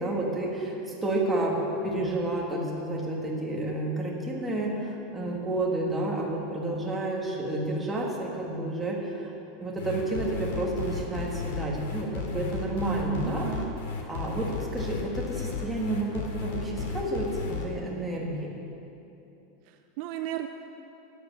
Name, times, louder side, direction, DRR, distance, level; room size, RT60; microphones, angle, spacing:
voice 1, 0.0-1.6 1.8-9.3 9.6-13.5 14.1-18.7, right 2 dB, 5° right, -3 dB, 1.8 m, -30 dB
sound 1, 9.8-17.6, left 5 dB, 75° left, 2.3 m, -34 dB
voice 2, 13.0-13.7 19.7-20.5, right 11 dB, 45° right, 6 dB, 0.5 m, -34 dB
12.5 x 9.9 x 7.4 m, 2.9 s
supercardioid pair, 170°, 0 cm